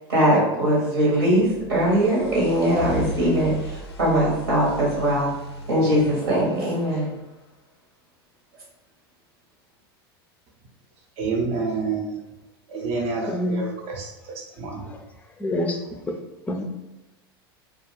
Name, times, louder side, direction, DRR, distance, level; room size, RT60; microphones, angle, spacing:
voice 1, 0.1-5.3 5.7-7.1, right 1 dB, 80° right, -5 dB, 1.2 m, -21 dB
sound 1, 1.3-7.2, left 1 dB, 90° left, 0.4 m, -37 dB
voice 2, 11.2-12.1 12.7-14.8, right 4 dB, 50° right, 0 dB, 0.7 m, -28 dB
voice 3, 13.3-13.6 15.4-15.8 16.5-16.6, left 1 dB, 10° left, 3 dB, 0.4 m, -25 dB
2.4 x 2.2 x 3.1 m, 0.97 s
hypercardioid pair, 90°, 13 cm